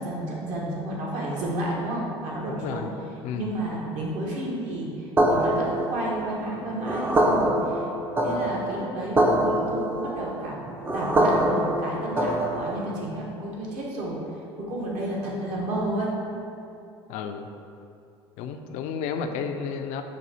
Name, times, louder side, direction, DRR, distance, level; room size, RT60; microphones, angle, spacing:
voice 1, 0.0-2.9 3.3-7.9 8.2-10.7 10.9-14.2 14.6-16.1 19.2-19.3, right 1 dB, 60° right, -4 dB, 1.1 m, -31 dB
voice 2, 2.5-2.9 3.2-3.5 17.1-17.5 18.4-20.0, left 6 dB, 60° left, 6 dB, 0.4 m, -32 dB
sound 1, 5.2-13.0, right 1 dB, 15° right, 0.4 m, -24 dB
6.1 x 2.6 x 2.7 m, 2.6 s
hypercardioid pair, 70°, 14 cm